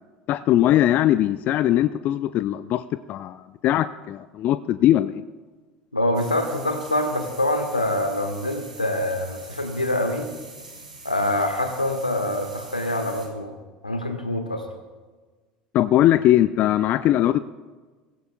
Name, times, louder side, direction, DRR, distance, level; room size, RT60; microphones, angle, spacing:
voice 1, 0.3-5.2 15.7-17.4, left 13 dB, 45° left, 14 dB, 0.4 m, -20 dB
voice 2, 5.9-10.3 11.0-13.6 13.8-14.6, left 1 dB, 90° left, 6 dB, 1.4 m, -25 dB
sound 1, 6.1-13.3, right 3 dB, 85° right, 2.6 m, -44 dB
24.0 x 16.5 x 2.2 m, 1.4 s
figure-of-eight pair, 70°, 4 cm